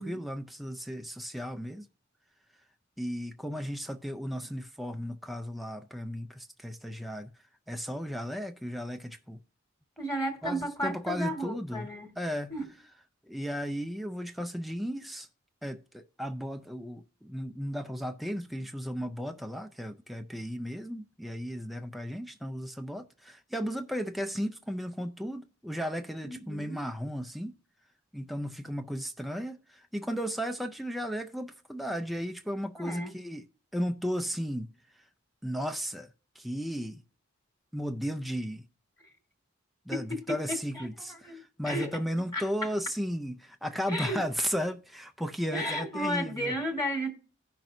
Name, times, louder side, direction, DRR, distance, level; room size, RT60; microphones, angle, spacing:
voice 1, 0.0-1.8 3.0-7.3 7.7-9.4 10.4-11.9 12.2-12.5 13.3-15.3 15.6-27.5 28.1-33.4 33.7-34.7 35.4-36.1 36.4-37.0 37.7-38.6 39.9-46.5, equal, ahead, 0.4 m, -35 dB
voice 2, 10.0-12.1 12.5-12.7 26.2-26.8 32.8-33.1 39.0-39.1 39.9-41.9 42.3-42.7 43.9-44.2 45.5-47.1, equal, 15° left, 1.6 m, -34 dB
15.5 x 5.9 x 2.6 m
head